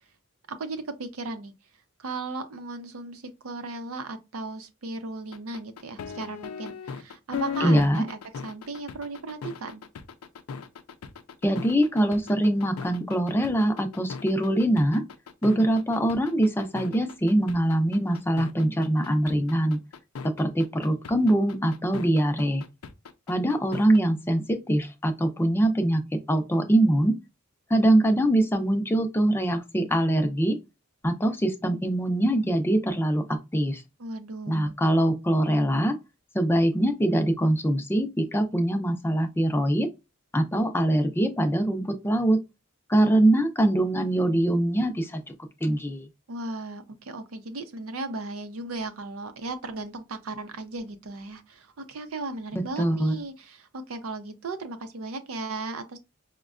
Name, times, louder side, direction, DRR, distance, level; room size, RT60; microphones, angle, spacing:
voice 1, 0.5-1.5 2.0-9.8 34.0-34.7 46.3-56.0, right 3 dB, 85° right, 0.6 m, -36 dB
sound 1, 5.3-24.0, left 6 dB, 85° left, 0.4 m, -38 dB
voice 2, 7.6-8.0 11.4-15.0 15.4-19.8 20.2-22.6 23.3-27.2 27.7-30.6 31.0-33.8 34.5-36.0 36.3-39.9 40.3-42.4 42.9-45.2 45.6-46.1 52.5-53.2, right 1 dB, 10° left, 0.4 m, -23 dB
5.0 x 2.1 x 2.4 m
head